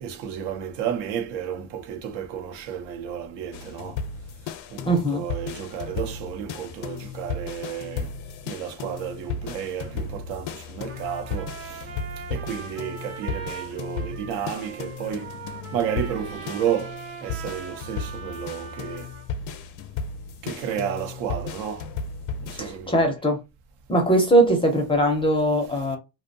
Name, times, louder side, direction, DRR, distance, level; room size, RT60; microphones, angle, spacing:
voice 1, 0.0-4.0 4.7-8.1 8.5-11.9 12.3-15.3 15.7-19.1 20.4-21.9 22.4-23.0, right 9 dB, 80° right, 0.7 m, -32 dB
sound 1, 3.5-22.7, left 5 dB, 65° left, 0.5 m, -35 dB
voice 2, 4.9-5.2 22.6-23.4 23.9-26.0, right 1 dB, 15° left, 0.4 m, -21 dB
Trumpet, 10.9-19.3, right 5 dB, 35° right, 0.6 m, -41 dB
2.6 x 2.1 x 2.5 m
cardioid pair, 155°, 42 cm